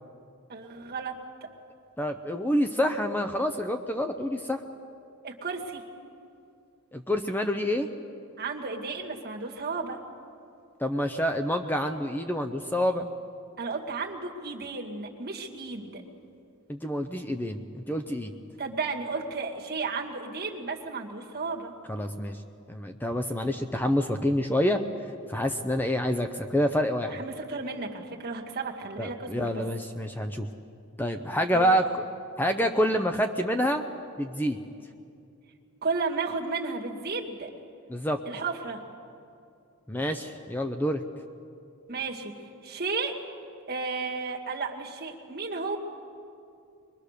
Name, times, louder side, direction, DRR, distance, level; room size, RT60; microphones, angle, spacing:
voice 1, 0.5-1.1 5.2-5.8 8.4-10.0 13.6-16.0 18.6-21.7 27.1-29.6 35.8-37.5 38.3-38.8 41.9-42.3 42.6-43.1 43.7-45.8, right 4 dB, 45° right, -1 dB, 2.1 m, -33 dB
voice 2, 2.0-4.6 6.9-7.9 10.8-13.1 16.7-18.3 21.9-22.4 22.7-24.8 25.3-27.2 29.0-30.5 31.0-32.0 32.4-33.8 34.2-34.6 37.9-38.2 39.9-41.0, equal, 10° left, 6 dB, 0.6 m, -27 dB
23.5 x 22.5 x 6.7 m, 2.6 s
head